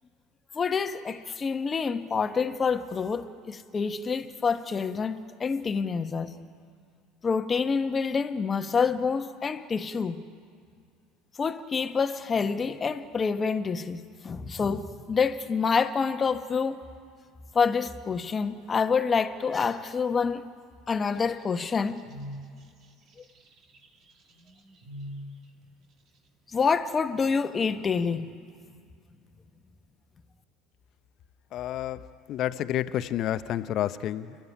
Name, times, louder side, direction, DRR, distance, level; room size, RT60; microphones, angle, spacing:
voice 1, 0.5-6.4 7.2-10.2 11.4-16.8 17.5-20.4 20.9-22.0 26.5-28.3, left 5 dB, 30° left, 1.2 m, -27 dB
sound 1, 21.1-25.4, equal, 50° right, 2.3 m, -43 dB
voice 2, 31.5-34.4, left 12 dB, 55° left, 0.7 m, -30 dB
28.5 x 12.0 x 9.9 m
hypercardioid pair, 75°, 0 cm